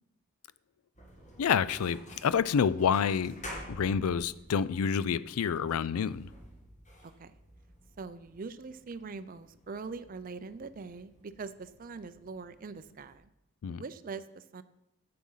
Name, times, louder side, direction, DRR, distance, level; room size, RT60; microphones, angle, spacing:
sound 1, 0.9-13.2, equal, 30° left, 1.8 m, -51 dB
voice 1, 1.4-3.4 3.7-6.3 13.6-13.8, left 7 dB, 80° left, 18 dB, 0.4 m, -28 dB
voice 2, 7.0-7.4 8.0-13.3 13.7-14.6, right 4 dB, 40° right, 12 dB, 0.4 m, -43 dB
8.3 x 7.7 x 5.6 m, 0.89 s
head